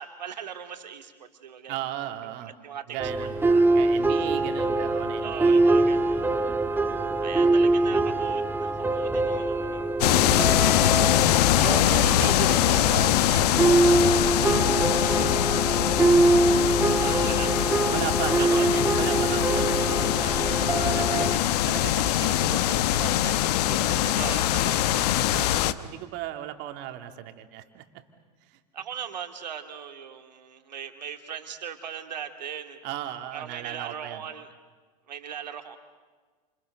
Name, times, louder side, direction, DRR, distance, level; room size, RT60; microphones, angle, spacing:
voice 1, 0.0-1.8 2.2-2.3 2.6-3.6 5.2-6.3 7.2-10.2 10.6-11.9 17.0-17.5 18.4-18.8 24.2-24.5 28.7-32.8 33.3-34.5 35.1-35.8, right 8 dB, 90° right, 6 dB, 2.5 m, -39 dB
voice 2, 1.7-2.5 2.9-3.3 3.7-5.8 6.2-6.6 7.4-8.0 11.6-14.9 17.1-17.3 17.9-27.8 28.4-28.6 32.8-34.2, right 12 dB, 55° right, 6 dB, 2.8 m, -37 dB
sound 1, 3.0-21.4, right 2 dB, 10° right, 1.8 m, -24 dB
sound 2, 10.0-25.7, left 13 dB, 70° left, 1.1 m, -23 dB
30.0 x 28.0 x 6.7 m, 1.4 s
hypercardioid pair, 95°, 21 cm